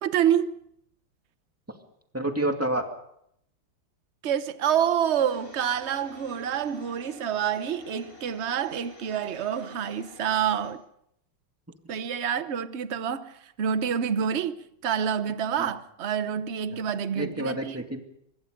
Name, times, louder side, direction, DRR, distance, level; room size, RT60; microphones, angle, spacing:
voice 1, 0.0-0.6 4.2-10.8 11.9-17.8, right 8 dB, 55° right, 0.8 m, -27 dB
voice 2, 2.1-2.8 15.6-15.7 16.7-16.8 17.1-18.0, right 1 dB, 5° right, 2.2 m, -28 dB
sound 1, 5.0-10.7, left 1 dB, 40° left, 6.8 m, -49 dB
24.5 x 21.5 x 5.2 m
omnidirectional pair, 2.3 m